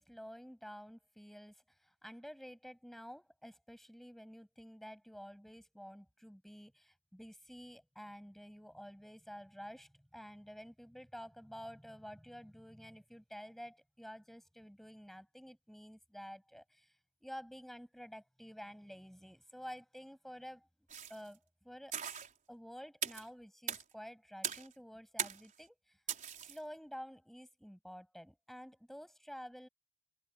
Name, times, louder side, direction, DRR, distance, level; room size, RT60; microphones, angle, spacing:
voice 1, 0.0-17.0 17.2-20.7 21.1-21.9 22.5-26.0 26.4-29.7, equal, ahead, 7.7 m, -51 dB
sound 1, 20.9-21.3 21.9-22.3 23.0-23.3 23.7-23.8 24.4-24.7 25.2-25.5 26.1-26.6, right 8 dB, 35° right, 4.5 m, -39 dB
head